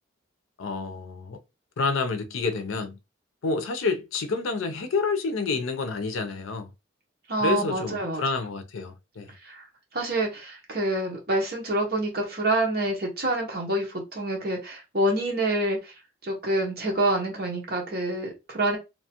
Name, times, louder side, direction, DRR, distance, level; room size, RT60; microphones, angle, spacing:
voice 1, 0.6-1.4 1.8-3.0 3.4-6.7 7.4-9.3, left 4 dB, 90° left, 0.5 m, -28 dB
voice 2, 7.3-8.2 9.4-9.7 9.9-15.9 16.2-18.8, right 1 dB, 50° right, 0.9 m, -27 dB
2.8 x 2.3 x 2.8 m
head